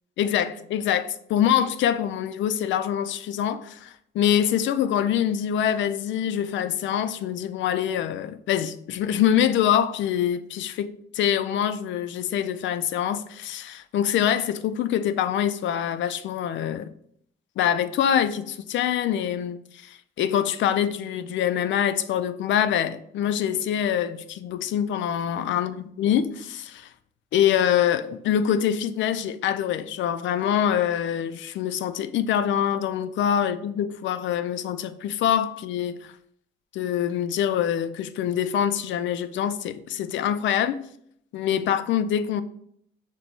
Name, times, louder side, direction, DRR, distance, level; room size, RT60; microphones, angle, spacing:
voice 1, 0.2-16.9 17.6-26.9 27.3-36.1 36.7-40.8 41.3-42.4, left 9 dB, 70° left, 0.4 m, -25 dB
6.0 x 2.2 x 4.0 m
cardioid pair, 90°, 20 cm